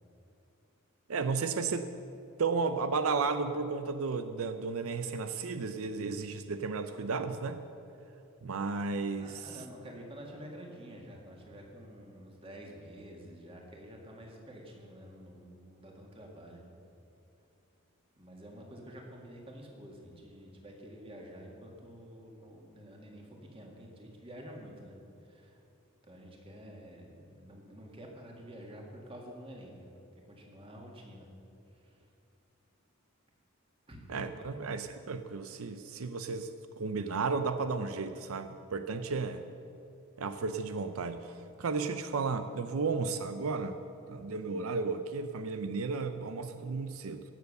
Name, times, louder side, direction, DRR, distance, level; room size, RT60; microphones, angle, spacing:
voice 1, 1.1-1.9 2.4-7.6 8.4-9.6 34.1-36.5 36.8-39.5 40.2-43.8 44.1-47.2, right 4 dB, 85° right, 9 dB, 0.6 m, -33 dB
voice 2, 9.2-16.6 18.2-24.9 25.2-25.6 26.0-29.9 30.3-31.3 31.8-31.9 33.9-34.0 34.3-34.4 38.9-39.0, equal, 25° right, 0 dB, 1.9 m, -49 dB
17.0 x 7.0 x 6.8 m, 2.7 s
head